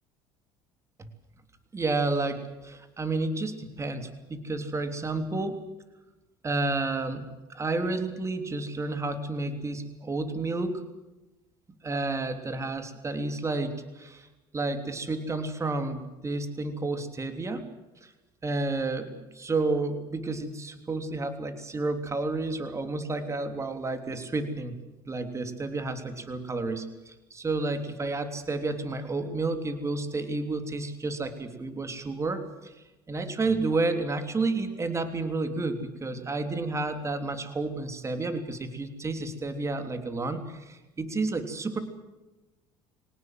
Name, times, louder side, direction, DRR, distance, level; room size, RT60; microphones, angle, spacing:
voice 1, 1.7-5.6 6.4-7.2 7.5-10.8 11.8-14.3 14.5-17.7 18.0-18.1 18.4-24.8 25.0-32.7 33.1-41.8, right 3 dB, 25° right, 8 dB, 3.3 m, -31 dB
24.0 x 19.0 x 7.8 m, 1.0 s
supercardioid pair, 95°, 12 cm